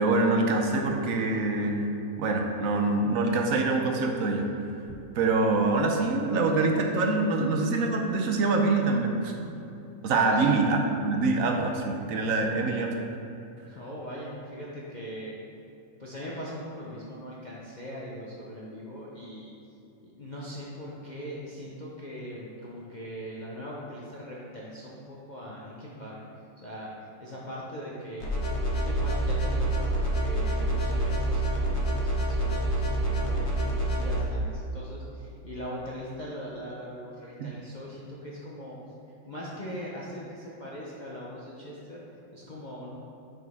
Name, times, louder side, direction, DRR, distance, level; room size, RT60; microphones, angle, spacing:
voice 1, 0.0-1.9 2.2-4.5 5.1-9.5 10.0-12.9 37.4-37.5, right 3 dB, 65° right, 2 dB, 0.8 m, -25 dB
voice 2, 10.3-10.6 12.3-12.5 13.7-15.4 16.0-19.5 20.0-26.2 26.6-28.3 28.7-38.8 39.2-42.0 42.3-42.9, equal, 75° left, -6 dB, 0.4 m, -40 dB
sound 1, 28.2-34.2, right 1 dB, 45° left, 1.2 m, -27 dB
7.1 x 6.1 x 3.5 m, 2.8 s
omnidirectional pair, 2.0 m